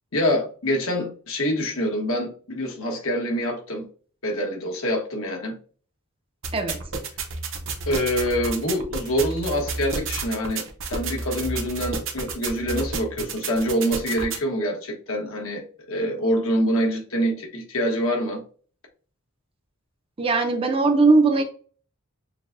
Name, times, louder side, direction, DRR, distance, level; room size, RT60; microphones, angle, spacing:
voice 1, 0.1-3.8 4.2-5.6 7.9-18.4, equal, 70° left, 1.2 m, -25 dB
sound 1, 6.4-14.4, right 4 dB, 60° right, 0.7 m, -31 dB
voice 2, 20.2-21.4, right 3 dB, 25° right, 0.5 m, -19 dB
6.5 x 2.2 x 2.5 m
head